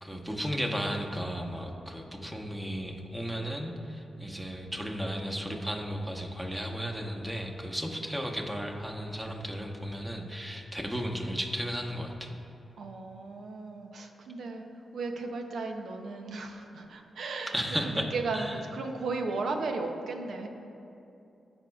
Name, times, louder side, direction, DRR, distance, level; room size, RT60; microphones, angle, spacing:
voice 1, 0.0-12.3 17.5-18.1 18.3-18.6, equal, 10° right, 1 dB, 1.2 m, -34 dB
voice 2, 12.8-14.6 14.9-17.5 17.8-20.5, right 3 dB, 75° right, 4 dB, 0.7 m, -35 dB
15.0 x 5.3 x 2.4 m, 2.7 s
supercardioid pair, 45°, 0 cm